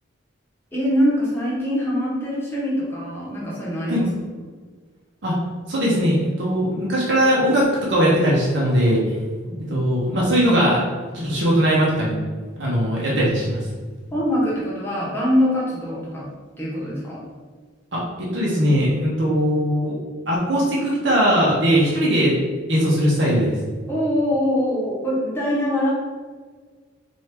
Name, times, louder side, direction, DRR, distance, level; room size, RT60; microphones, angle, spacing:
voice 1, 0.7-4.1 9.5-9.6 14.1-16.2 16.6-17.2 23.9-25.9, equal, 10° left, -6 dB, 0.9 m, -23 dB
voice 2, 5.7-9.0 9.7-10.8 11.1-12.2 12.6-13.6 17.9-19.9 20.3-22.3 22.7-23.5, equal, 60° right, -5 dB, 0.9 m, -19 dB
4.3 x 2.7 x 3.4 m, 1.5 s
head